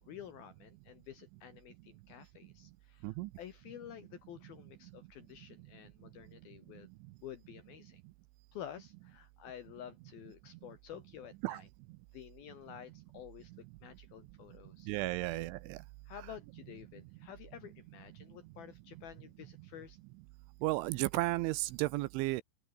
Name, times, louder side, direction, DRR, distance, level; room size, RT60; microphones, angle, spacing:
voice 1, 0.0-6.9 7.2-8.0 8.5-11.7 12.1-14.9 16.1-20.0, left 10 dB, 70° left, 2.4 m, -51 dB
voice 2, 14.9-15.8 20.6-22.4, right 19 dB, 80° right, 2.9 m, -33 dB
open air
omnidirectional pair, 5.8 m